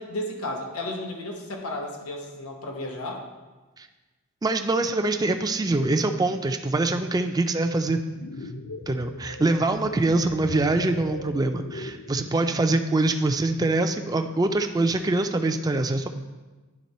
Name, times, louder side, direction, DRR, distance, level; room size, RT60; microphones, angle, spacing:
voice 1, 0.0-3.2, left 1 dB, 85° left, 2 dB, 1.0 m, -33 dB
voice 2, 4.4-8.0 8.9-16.1, right 2 dB, 15° right, 6 dB, 0.3 m, -24 dB
sound 1, 8.1-12.7, left 3 dB, 70° left, 0.5 m, -40 dB
11.0 x 3.6 x 4.1 m, 1.2 s
head